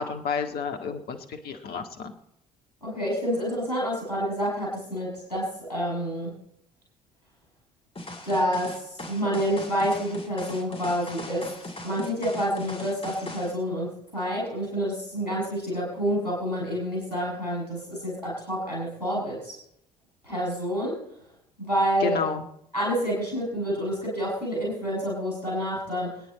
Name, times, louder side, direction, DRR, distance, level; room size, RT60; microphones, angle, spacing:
voice 1, 0.0-2.1 22.0-22.4, left 5 dB, 50° left, 6 dB, 1.8 m, -30 dB
voice 2, 2.8-6.4 8.2-19.6 20.2-21.0 21.6-22.2 22.7-26.2, equal, 85° left, -3 dB, 7.1 m, -28 dB
sound 1, 8.0-13.5, left 1 dB, 30° left, 3.1 m, -39 dB
27.0 x 9.9 x 4.1 m, 0.74 s
figure-of-eight pair, 50°, 20 cm